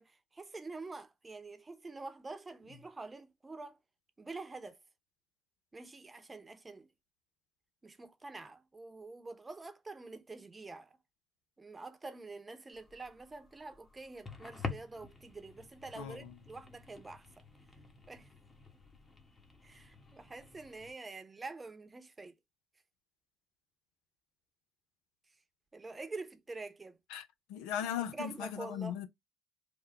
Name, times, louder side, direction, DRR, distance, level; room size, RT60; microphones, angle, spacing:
voice 1, 0.0-3.8 4.2-4.8 5.7-6.9 7.8-10.9 11.6-17.4 18.1-18.3 19.6-22.4 25.7-27.0 28.0-29.0, right 3 dB, 25° right, 0.8 m, -46 dB
sound 1, 12.7-20.9, left 4 dB, 30° left, 1.1 m, -48 dB
voice 2, 27.1-29.1, left 9 dB, 85° left, 0.6 m, -38 dB
3.5 x 2.3 x 3.3 m
supercardioid pair, 75°, 0 cm